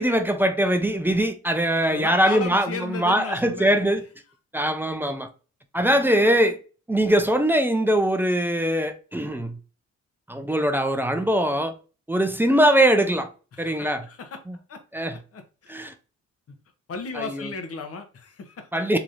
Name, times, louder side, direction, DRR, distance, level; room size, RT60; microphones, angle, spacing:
voice 1, 0.0-4.0 4.5-5.3 5.7-6.6 6.9-9.6 10.3-11.7 12.1-13.3 13.6-14.1 14.5-14.6 14.9-15.2 15.7-15.9 17.1-17.5 18.7-19.0, right 1 dB, 5° right, 0.4 m, -22 dB
voice 2, 1.9-3.9 13.5-14.3 14.7-14.8 15.3-15.7 16.9-18.9, left 4 dB, 50° left, 0.9 m, -35 dB
3.5 x 3.0 x 2.6 m
cardioid pair, 90°, 30 cm